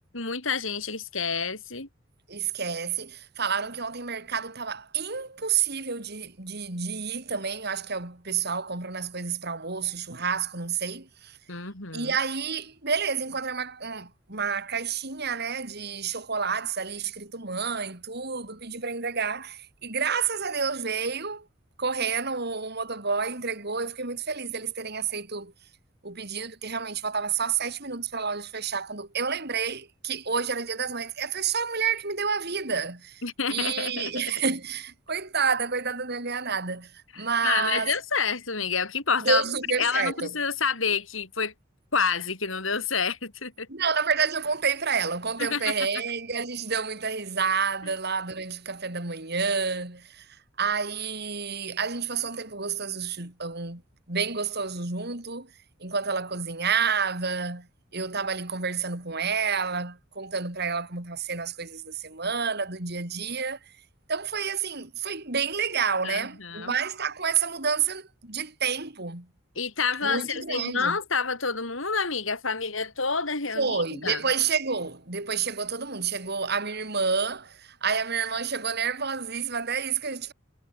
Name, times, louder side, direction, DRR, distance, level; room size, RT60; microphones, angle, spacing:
voice 1, 0.0-1.9 11.5-12.2 33.2-34.3 37.1-41.5 41.9-43.7 45.4-45.7 66.0-66.7 69.6-74.2, left 5 dB, 75° left, 6.3 m, -29 dB
voice 2, 2.3-11.4 11.9-21.5 21.8-25.5 26.0-33.2 33.5-37.9 39.2-40.3 43.7-50.3 50.6-53.8 54.1-55.5 55.8-57.7 57.9-63.6 64.1-69.3 70.0-71.0 73.6-80.3, right 5 dB, 55° right, 4.0 m, -29 dB
head